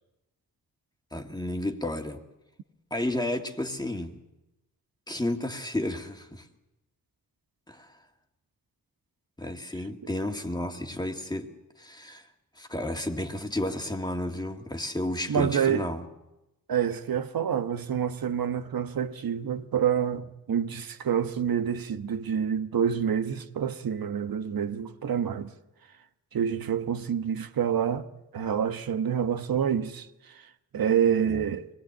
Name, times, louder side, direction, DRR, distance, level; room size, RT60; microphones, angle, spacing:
voice 1, 1.1-2.2 2.9-4.2 5.1-6.5 7.7-7.9 9.4-11.5 11.8-12.3 12.6-16.0 31.3-31.4, left 1 dB, 10° left, 2.0 m, -32 dB
voice 2, 15.3-15.9 16.7-25.5 26.3-28.1 28.3-31.7, right 8 dB, 85° right, 1.2 m, -27 dB
24.5 x 19.5 x 8.8 m
wide cardioid pair, 115°, 34 cm